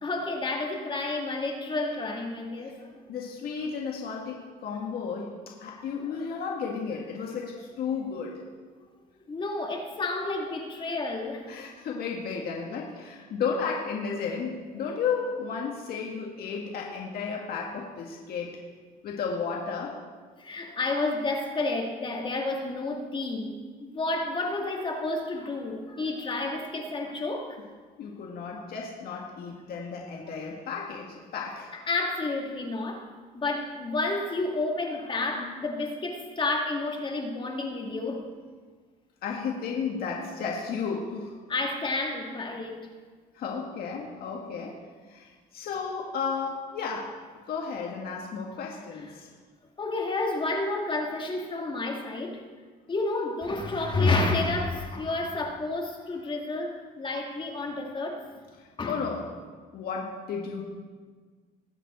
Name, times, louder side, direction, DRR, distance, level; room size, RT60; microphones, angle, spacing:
voice 1, 0.0-2.9 5.8-5.9 9.3-11.5 20.4-27.6 31.7-33.1 33.3-38.3 41.5-42.8 49.8-52.4 52.9-58.2 58.8-59.0, left 2 dB, 30° left, 1 dB, 1.6 m, -30 dB
voice 2, 3.1-8.4 11.5-18.6 19.0-20.0 28.0-31.8 35.3-35.5 39.2-41.4 43.3-44.8 45.1-47.1 47.4-49.3 58.6-59.3 59.7-60.6, left 5 dB, 65° left, -1 dB, 1.7 m, -33 dB
20.5 x 7.4 x 4.2 m, 1.5 s
cardioid pair, 110°, 17 cm